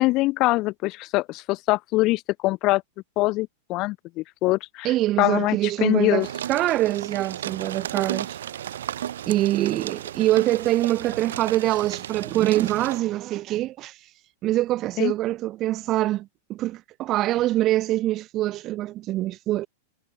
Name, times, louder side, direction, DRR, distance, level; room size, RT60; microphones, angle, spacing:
voice 1, 0.0-2.8 3.2-6.3 15.0-15.1, left 20 dB, 40° left, 0.6 m, -23 dB
voice 2, 4.8-8.4 9.3-14.0 14.4-19.7, right 15 dB, 35° right, 0.3 m, -24 dB
sound 1, 6.2-13.0, right 10 dB, 80° right, 2.0 m, -34 dB
hypercardioid pair, 135°, 0 cm